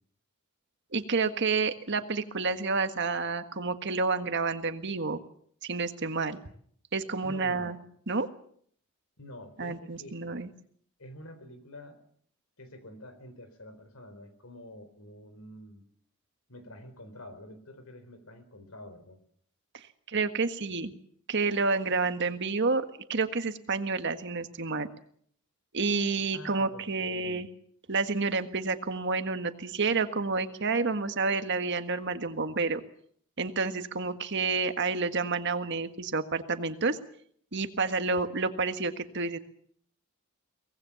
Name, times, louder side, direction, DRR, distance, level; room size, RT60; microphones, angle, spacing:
voice 1, 0.9-5.2 5.6-6.4 6.9-7.8 8.1-8.3 9.6-10.5 19.7-20.9 21.3-24.9 25.7-27.5 27.9-32.8 33.4-37.0 37.5-39.4, right 4 dB, 55° right, 9 dB, 1.7 m, -29 dB
voice 2, 7.2-7.7 9.2-10.2 11.0-12.0 12.6-15.8 16.5-19.2 26.3-27.5, left 1 dB, 85° left, 11 dB, 4.1 m, -47 dB
23.5 x 19.0 x 7.1 m, 0.63 s
head